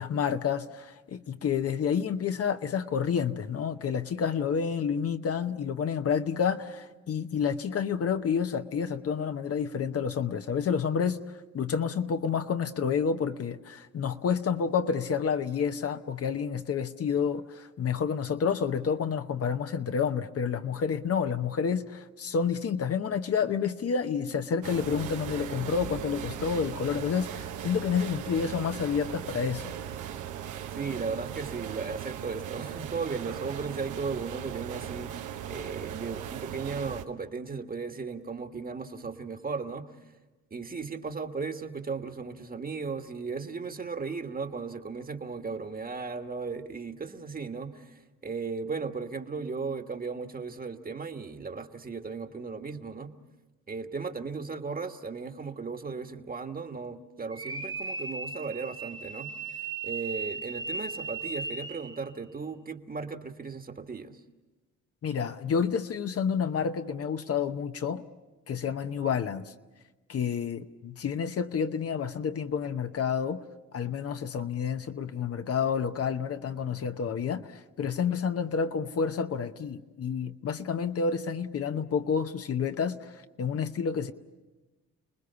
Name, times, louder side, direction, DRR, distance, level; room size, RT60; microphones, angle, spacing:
voice 1, 0.0-11.2 11.5-29.7 65.0-68.1 68.5-69.5 70.1-73.4 73.7-77.5 77.8-84.1, left 6 dB, 50° left, 1.0 m, -29 dB
sound 1, 24.6-37.0, right 10 dB, 80° right, 1.2 m, -38 dB
voice 2, 30.7-40.0 40.5-53.1 53.7-64.2, right 4 dB, 30° right, 1.6 m, -36 dB
sound 2, 57.3-62.0, right 4 dB, 15° right, 1.1 m, -37 dB
30.0 x 20.0 x 6.9 m
cardioid pair, 90°, 30 cm